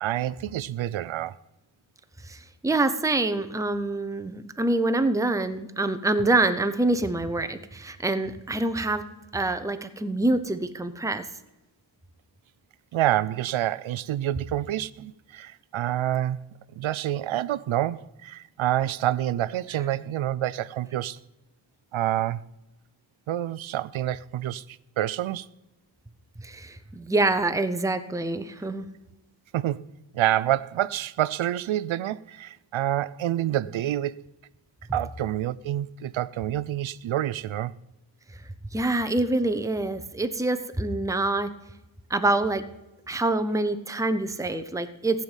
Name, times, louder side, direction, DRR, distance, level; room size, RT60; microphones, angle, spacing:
voice 1, 0.0-1.4 12.9-16.5 16.8-21.2 21.9-22.5 23.3-25.5 29.5-29.8 30.1-34.2 34.9-37.7, right 13 dB, 85° right, 0.6 m, -27 dB
voice 2, 2.2-9.0 9.3-11.3 26.4-28.9 38.7-41.5 42.1-42.6 43.1-45.2, right 2 dB, 5° right, 0.8 m, -26 dB
15.0 x 5.8 x 9.0 m
wide cardioid pair, 100°, 46 cm